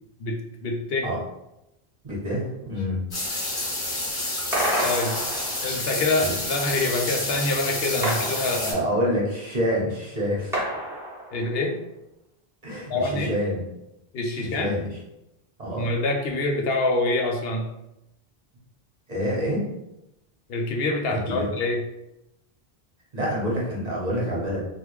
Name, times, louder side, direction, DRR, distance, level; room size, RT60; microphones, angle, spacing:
voice 1, 0.2-1.1 4.8-5.2 5.6-8.8 11.3-11.8 12.9-13.3 14.1-14.7 15.8-17.7 20.5-21.8, left 2 dB, 75° left, 2 dB, 0.8 m, -26 dB
voice 2, 2.0-3.0 3.6-3.8 6.2-6.4 8.7-10.7 12.6-13.6 14.4-14.9 15.6-15.9 19.1-19.6 21.1-21.5 23.1-24.6, equal, 40° right, -5 dB, 1.1 m, -27 dB
sound 1, 3.1-8.7, left 1 dB, 45° left, 1.2 m, -29 dB
sound 2, 4.5-5.9 8.0-9.2 10.5-11.7, right 1 dB, 5° right, 0.9 m, -29 dB
3.2 x 2.5 x 3.1 m, 0.88 s
omnidirectional pair, 1.0 m